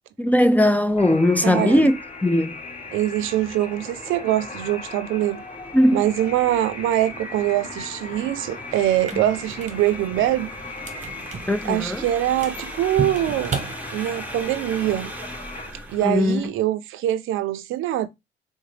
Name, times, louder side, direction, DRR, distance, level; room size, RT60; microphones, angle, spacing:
voice 1, 0.2-2.5 5.7-6.0 11.5-12.0 16.0-16.4, left 1 dB, 10° left, 0.3 m, -19 dB
sound 1, 0.9-16.5, right 1 dB, 10° right, 0.8 m, -41 dB
sound 2, 1.0-15.7, left 3 dB, 35° left, 0.9 m, -38 dB
voice 2, 1.4-1.9 2.9-5.4 5.9-10.5 11.6-13.5 13.9-15.1 15.9-18.1, right 13 dB, 85° right, 0.4 m, -23 dB
sound 3, 8.9-14.4, right 5 dB, 35° right, 0.8 m, -35 dB
3.8 x 2.1 x 3.2 m
cardioid pair, 90°, 20 cm